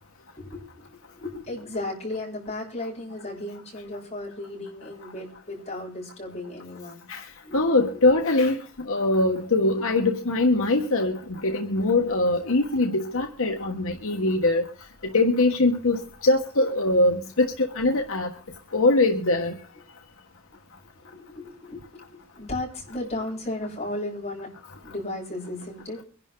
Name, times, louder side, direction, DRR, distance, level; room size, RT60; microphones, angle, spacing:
voice 1, 0.4-7.0 7.4-8.2 19.7-19.8 21.0-24.5 24.8-26.0, left 1 dB, 30° left, 7.8 m, -35 dB
voice 2, 7.5-14.6 15.0-18.3 18.7-19.5, left 2 dB, 70° left, 1.3 m, -22 dB
23.5 x 11.5 x 3.8 m
head